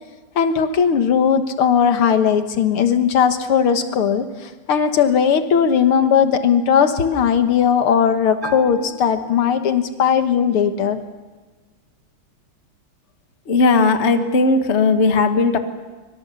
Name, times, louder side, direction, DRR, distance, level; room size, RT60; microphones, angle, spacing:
voice 1, 0.4-11.0, left 7 dB, 80° left, 8 dB, 2.2 m, -18 dB
Bell, 8.4-10.0, right 2 dB, 25° right, 2.6 m, -36 dB
voice 2, 13.5-15.6, left 3 dB, 35° left, 7 dB, 1.6 m, -16 dB
25.5 x 23.5 x 7.1 m, 1.3 s
omnidirectional pair, 2.4 m